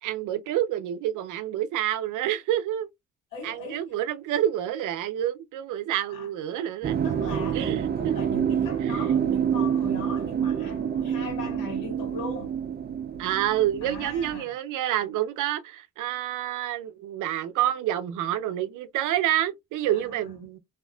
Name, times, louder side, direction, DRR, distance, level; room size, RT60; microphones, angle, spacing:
voice 1, 0.0-2.9 3.4-7.0 7.5-8.2 8.8-8.9 13.2-20.6, right 12 dB, 85° right, 0.6 m, -28 dB
voice 2, 3.3-3.9 6.1-6.3 7.0-12.6 13.8-14.5 19.8-20.4, left 2 dB, 85° left, 1.6 m, -39 dB
sound 1, 6.8-14.4, right 8 dB, 35° right, 0.4 m, -27 dB
2.8 x 2.4 x 2.2 m
cardioid pair, 90°, 30 cm